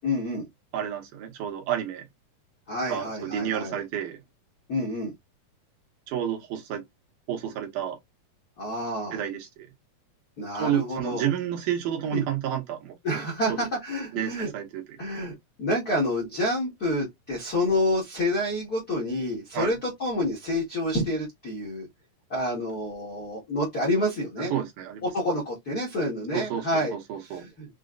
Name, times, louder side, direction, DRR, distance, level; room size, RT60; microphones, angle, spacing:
voice 1, 0.0-0.4 2.7-3.7 4.7-5.1 8.6-9.2 10.4-11.3 12.1-12.2 13.0-14.5 15.0-15.3 15.6-21.9 22.3-24.5 25.1-26.9 27.3-27.7, left 1 dB, 70° left, 0.8 m, -28 dB
voice 2, 0.7-2.1 2.9-4.2 6.1-6.8 7.3-8.0 9.1-9.7 10.5-13.0 13.5-13.7 14.1-15.0 19.5-19.7 24.4-25.1 26.3-27.4, right 10 dB, 80° right, 2.4 m, -30 dB
6.0 x 2.0 x 2.4 m
omnidirectional pair, 3.9 m